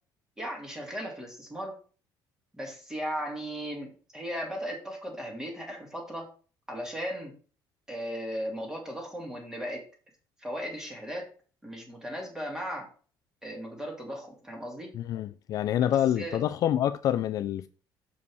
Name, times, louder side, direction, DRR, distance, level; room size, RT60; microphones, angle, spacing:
voice 1, 0.4-1.8 2.5-6.3 6.7-7.3 7.9-9.8 10.4-11.3 11.6-12.9 13.4-14.9 16.1-16.4, equal, 5° right, 2.1 m, -36 dB
voice 2, 14.9-17.7, left 11 dB, 50° left, 0.4 m, -27 dB
7.1 x 5.0 x 4.7 m
cardioid pair, 160°, 8 cm